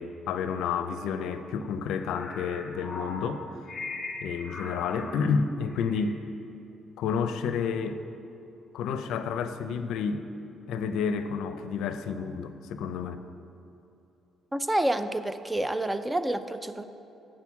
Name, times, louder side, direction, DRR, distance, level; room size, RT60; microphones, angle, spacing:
voice 1, 0.0-3.6 4.2-6.2 7.0-8.0 8.7-10.3 10.7-13.2, left 6 dB, 85° left, 9 dB, 0.5 m, -30 dB
sound 1, 2.0-5.3 5.6-6.0, left 3 dB, 35° left, 1.9 m, -39 dB
voice 2, 14.5-16.8, right 1 dB, 15° right, 11 dB, 0.4 m, -28 dB
7.6 x 6.2 x 7.0 m, 2.9 s
cardioid pair, 90°, 0 cm